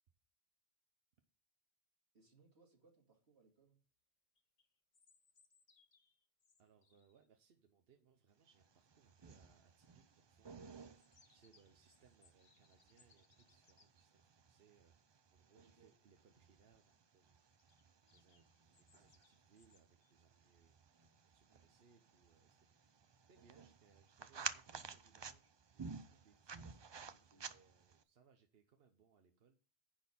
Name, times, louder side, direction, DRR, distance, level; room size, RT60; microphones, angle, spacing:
voice 1, 2.1-3.8 15.6-15.9 27.1-27.5, right 4 dB, 85° right, 1 dB, 2.5 m, -70 dB
sound 1, 4.4-7.3 10.6-13.9 17.5-20.2, left 5 dB, 50° left, 1.0 m, -73 dB
voice 2, 6.6-17.4 18.1-20.7 21.0-23.0 23.3-27.1 27.4-29.6, right 6 dB, 70° right, 5 dB, 1.0 m, -71 dB
sound 2, 8.6-28.0, right 5 dB, 50° right, 0.3 m, -53 dB
10.0 x 4.2 x 6.9 m, 0.40 s
omnidirectional pair, 1.1 m